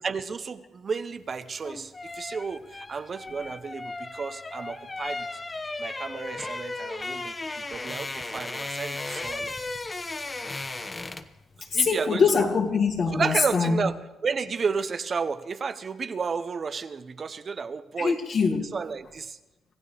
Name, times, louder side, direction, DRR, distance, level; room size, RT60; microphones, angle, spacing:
voice 1, 0.0-5.3 5.8-9.7 11.7-12.5 13.1-18.1 18.6-19.4, right 5 dB, 40° right, 0.9 m, -32 dB
sound 1, 1.4-11.4 11.7-11.9, left 2 dB, 25° left, 1.0 m, -36 dB
voice 2, 11.7-13.9 18.0-18.6, left 5 dB, 55° left, 2.5 m, -23 dB
25.5 x 15.0 x 3.5 m
cardioid pair, 90°, 0 cm